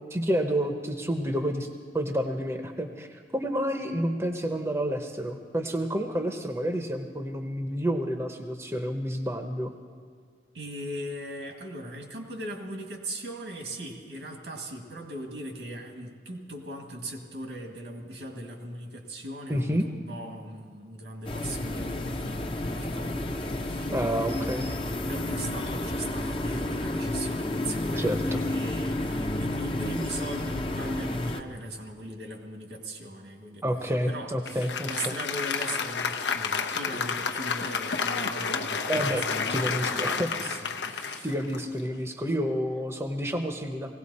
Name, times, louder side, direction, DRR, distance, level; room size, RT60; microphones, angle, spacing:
voice 1, 0.1-1.7 1.9-9.7 19.5-19.9 23.9-24.7 28.0-28.4 33.6-35.1 38.9-39.2 39.5-40.3 41.2-44.0, equal, 15° right, 5 dB, 0.7 m, -29 dB
voice 2, 10.5-41.3, right 1 dB, 85° right, 3 dB, 2.0 m, -39 dB
sound 1, 21.2-31.4, left 1 dB, 30° left, 0.7 m, -31 dB
Applause, 34.5-42.1, left 5 dB, 90° left, 0.8 m, -30 dB
19.0 x 17.0 x 4.2 m, 2.1 s
head